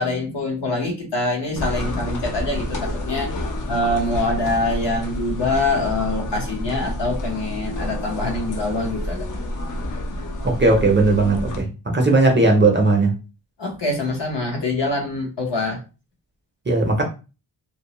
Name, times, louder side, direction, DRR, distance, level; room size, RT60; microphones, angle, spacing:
voice 1, 0.0-3.3 3.7-9.2 13.6-15.8, left 2 dB, 70° left, 0 dB, 1.0 m, -24 dB
sound 1, 1.6-11.6, left 1 dB, 45° left, 0.5 m, -29 dB
voice 2, 10.4-11.7 11.9-13.1 16.7-17.0, right 2 dB, 25° right, 1 dB, 0.5 m, -17 dB
2.6 x 2.0 x 2.9 m, 0.31 s
wide cardioid pair, 180°, 44 cm